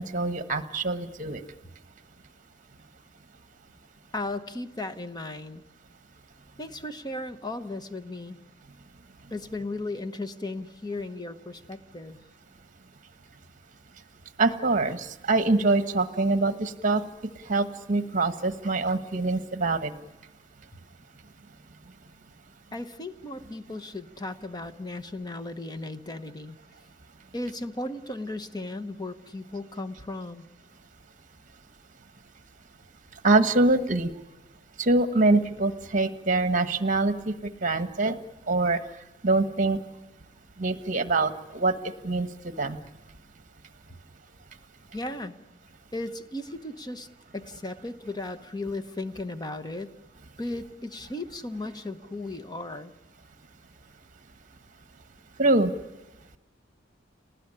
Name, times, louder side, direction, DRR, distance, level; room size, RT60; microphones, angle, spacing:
voice 1, 0.0-1.4 14.4-17.0 17.4-19.9 33.1-34.1 34.8-38.2 38.5-38.8 39.2-39.8 40.6-42.8 55.4-55.7, right 3 dB, 45° right, 10 dB, 1.3 m, -24 dB
voice 2, 4.1-5.6 6.6-8.4 9.3-12.2 22.7-26.6 27.3-30.5 44.9-45.4 45.9-47.1 47.3-49.9 50.4-52.9, left 2 dB, 20° left, 9 dB, 1.0 m, -36 dB
29.0 x 19.5 x 9.9 m, 1.1 s
head